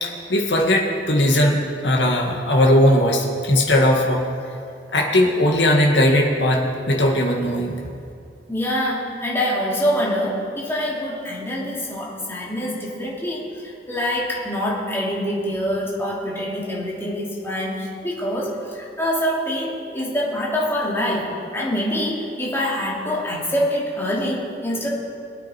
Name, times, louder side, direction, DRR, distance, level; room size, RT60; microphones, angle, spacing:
voice 1, 0.0-4.6 4.9-7.8, left 1 dB, 70° left, 0 dB, 1.9 m, -18 dB
voice 2, 8.5-21.3 21.5-24.9, equal, 15° left, -5 dB, 2.9 m, -25 dB
23.0 x 8.9 x 4.5 m, 2.5 s
head